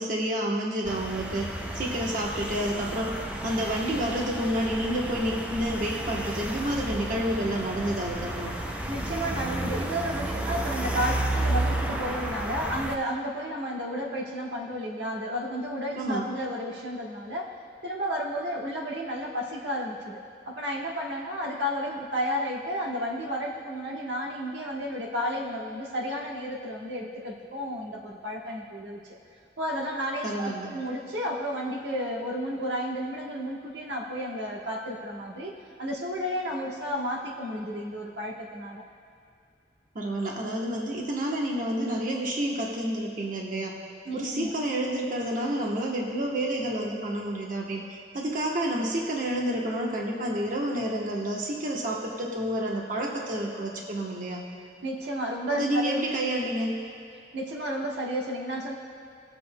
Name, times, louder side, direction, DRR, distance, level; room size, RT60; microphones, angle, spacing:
voice 1, 0.0-3.2 3.4-8.5 16.0-16.2 30.2-30.7 39.9-43.8 44.1-47.8 48.1-54.4 55.5-56.7, right 1 dB, 50° right, -1 dB, 1.0 m, -29 dB
sound 1, 0.8-13.0, right 1 dB, 10° right, 0.5 m, -32 dB
voice 2, 8.9-17.5 17.8-20.2 20.5-29.2 29.6-38.8 44.0-44.5 54.8-56.0 57.3-58.7, equal, 85° right, -2 dB, 1.2 m, -32 dB
19.5 x 7.7 x 2.2 m, 2.5 s
head